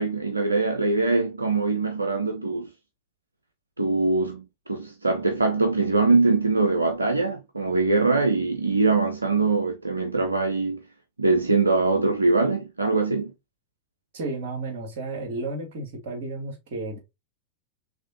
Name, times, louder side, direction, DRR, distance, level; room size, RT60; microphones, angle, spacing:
voice 1, 0.0-2.7 3.8-10.8 11.2-13.3, right 3 dB, 80° right, 0.5 m, -23 dB
voice 2, 14.1-17.0, right 2 dB, 50° right, 1.8 m, -32 dB
4.1 x 3.3 x 2.7 m
figure-of-eight pair, 90°, 0 cm